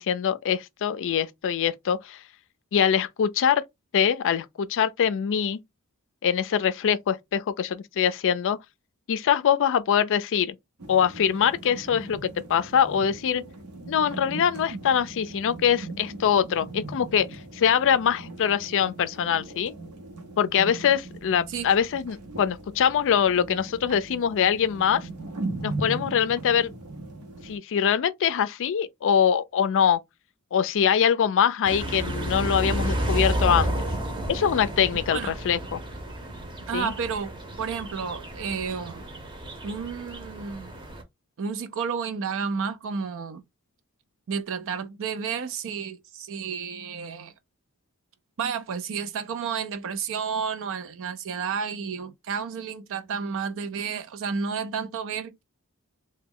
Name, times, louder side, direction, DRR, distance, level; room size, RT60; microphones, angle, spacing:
voice 1, 0.0-2.2 2.7-3.6 3.9-5.6 6.2-8.6 9.1-10.5 10.9-13.4 13.9-19.7 20.4-25.1 25.6-26.7 27.4-30.0 30.5-33.7 34.3-35.8 36.7-36.9, left 8 dB, 60° left, 0.4 m, -23 dB
sound 1, 10.8-27.6, right 2 dB, 85° right, 0.8 m, -39 dB
sound 2, 31.6-41.0, right 1 dB, 20° right, 0.7 m, -31 dB
voice 2, 36.7-39.1 39.6-40.7 41.4-43.4 44.3-47.3 48.4-55.4, right 6 dB, 60° right, 0.4 m, -31 dB
3.0 x 2.2 x 3.6 m
head